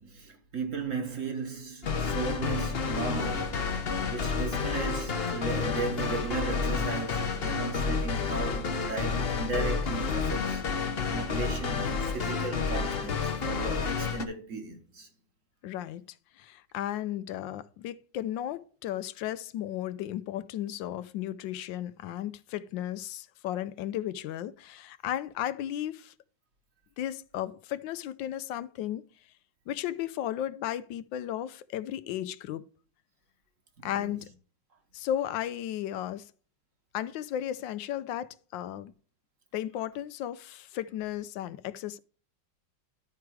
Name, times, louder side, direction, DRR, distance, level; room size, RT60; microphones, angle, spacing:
voice 1, 0.0-3.7 4.1-10.6 11.0-15.1 33.8-34.2, right 4 dB, 45° right, 1.6 m, -36 dB
sound 1, 1.8-14.2, left 5 dB, 45° left, 0.9 m, -30 dB
voice 2, 15.6-16.0 16.4-26.1 27.0-29.0 29.7-32.7 33.8-34.3 34.9-36.3 36.9-38.9 39.5-42.0, left 11 dB, 80° left, 1.3 m, -34 dB
11.5 x 4.8 x 4.6 m
omnidirectional pair, 2.0 m